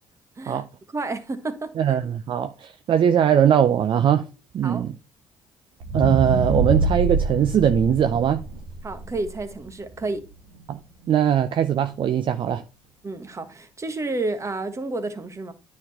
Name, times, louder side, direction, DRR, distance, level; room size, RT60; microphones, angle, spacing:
voice 1, 0.9-1.7 4.6-4.8 8.8-10.2 13.0-15.5, right 2 dB, 30° right, 1.5 m, -30 dB
voice 2, 1.8-4.3 4.5-4.9 5.9-8.4 10.7-10.8 11.1-12.6, right 9 dB, 50° right, 0.6 m, -20 dB
sound 1, 5.8-10.1 10.5-10.6, right 2 dB, 70° right, 1.7 m, -25 dB
9.8 x 4.3 x 4.2 m
hypercardioid pair, 55°, 11 cm